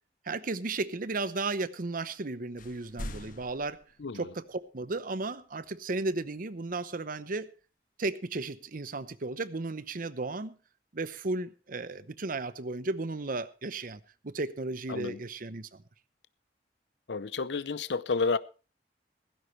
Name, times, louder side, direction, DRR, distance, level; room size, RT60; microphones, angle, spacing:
voice 1, 0.2-3.8 4.1-7.5 8.0-10.6 10.9-15.8, right 3 dB, 55° right, 0.8 m, -34 dB
sound 1, 2.1-2.3 2.6-4.6, left 1 dB, 50° left, 1.5 m, -43 dB
voice 2, 17.1-18.4, left 4 dB, 80° left, 0.7 m, -30 dB
16.5 x 15.0 x 3.2 m
head